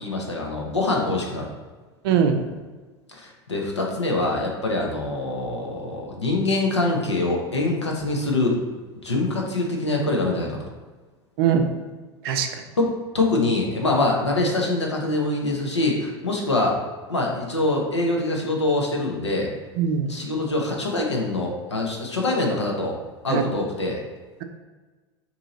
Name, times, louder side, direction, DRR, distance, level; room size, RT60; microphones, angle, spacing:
voice 1, 0.0-1.5 3.1-8.8 9.0-10.7 12.8-16.8 17.1-19.5 20.1-23.0 23.2-24.0, left 2 dB, 85° left, -1 dB, 0.7 m, -24 dB
voice 2, 2.0-2.4 11.4-11.7 12.2-12.5 19.8-20.1 23.3-23.4, right 7 dB, 55° right, 6 dB, 0.5 m, -21 dB
2.8 x 2.7 x 3.8 m, 1.3 s
figure-of-eight pair, 80°, 14 cm